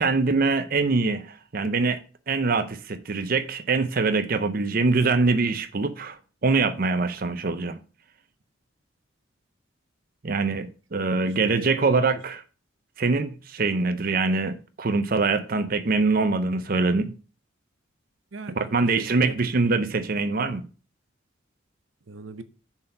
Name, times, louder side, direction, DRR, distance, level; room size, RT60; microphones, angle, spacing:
voice 1, 0.0-2.0 2.3-7.8 10.2-12.4 13.0-17.1 18.7-20.6, right 3 dB, 45° right, 0.6 m, -24 dB
voice 2, 10.9-12.0 18.3-19.3 22.1-22.4, right 3 dB, 80° right, 0.7 m, -40 dB
7.1 x 4.5 x 6.6 m
head